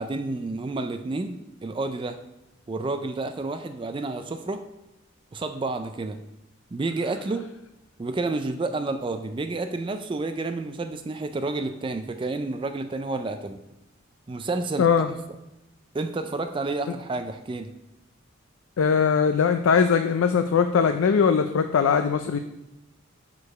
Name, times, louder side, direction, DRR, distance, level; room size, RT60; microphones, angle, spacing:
voice 1, 0.0-2.2 2.7-4.6 5.3-6.2 6.7-7.5 8.0-13.6 14.3-15.1 15.9-17.7, right 3 dB, 25° right, 8 dB, 0.3 m, -30 dB
voice 2, 14.8-15.1 18.8-22.4, left 6 dB, 85° left, 7 dB, 0.4 m, -20 dB
6.6 x 4.8 x 5.3 m, 0.91 s
head